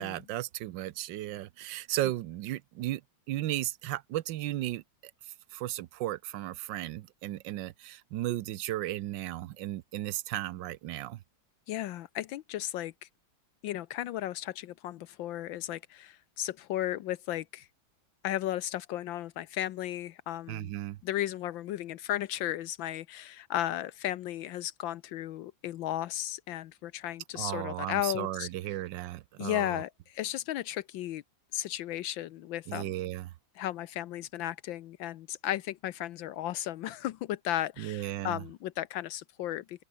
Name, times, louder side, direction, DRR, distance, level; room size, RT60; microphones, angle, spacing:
voice 1, 0.0-3.0 3.3-4.8 5.5-11.2 20.5-21.0 27.3-29.8 32.7-33.3 37.8-38.4, right 14 dB, 75° right, 1.4 m, -35 dB
voice 2, 11.7-12.9 13.6-17.7 18.2-20.7 21.0-28.5 29.4-31.2 31.5-32.9 33.6-39.8, left 13 dB, 80° left, 1.5 m, -35 dB
omnidirectional pair, 2.1 m